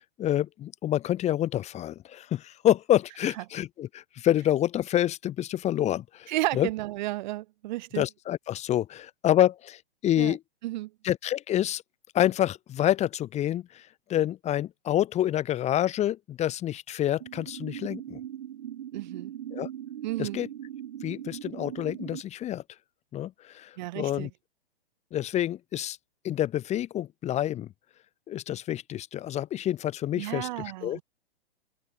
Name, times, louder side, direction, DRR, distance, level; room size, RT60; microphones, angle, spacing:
voice 1, 0.0-6.7 8.0-10.4 11.0-11.8 12.1-18.2 19.5-19.7 20.2-20.5 21.0-22.6 23.1-24.3 25.1-26.0 26.2-27.7 28.3-31.0, left 12 dB, 20° left, 2.8 m, -28 dB
voice 2, 6.3-8.0 10.2-10.4 10.6-10.9 18.9-19.3 20.0-20.4 23.8-24.3 30.2-31.0, right 17 dB, 45° right, 4.5 m, -32 dB
sound 1, 17.2-22.2, right 11 dB, 60° right, 5.3 m, -39 dB
hypercardioid pair, 130°, 31 cm